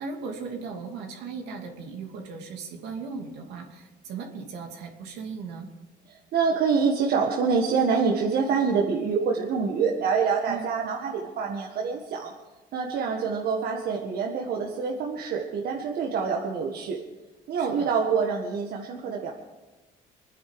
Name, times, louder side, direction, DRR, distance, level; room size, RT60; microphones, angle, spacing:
voice 1, 0.0-5.7 10.5-10.6 17.6-17.9, right 5 dB, 85° right, 2 dB, 2.9 m, -37 dB
voice 2, 6.1-12.3 12.7-17.0 17.5-19.3, right 5 dB, 65° right, 0 dB, 1.7 m, -26 dB
25.0 x 10.0 x 5.1 m, 1.1 s
cardioid pair, 110°, 17 cm